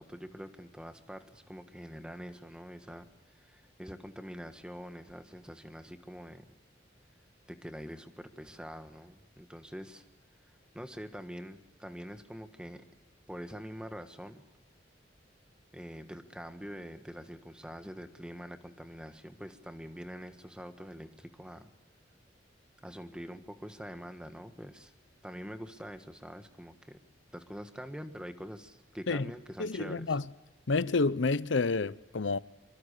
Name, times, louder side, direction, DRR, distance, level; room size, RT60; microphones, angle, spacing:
voice 1, 0.0-6.4 7.5-10.0 10.7-12.8 13.3-14.4 15.7-21.7 22.8-24.9 25.2-27.0 27.3-30.2, equal, 5° right, 1.5 m, -45 dB
voice 2, 29.6-30.2 30.7-32.4, left 3 dB, 85° left, 0.7 m, -29 dB
25.5 x 25.0 x 6.7 m
head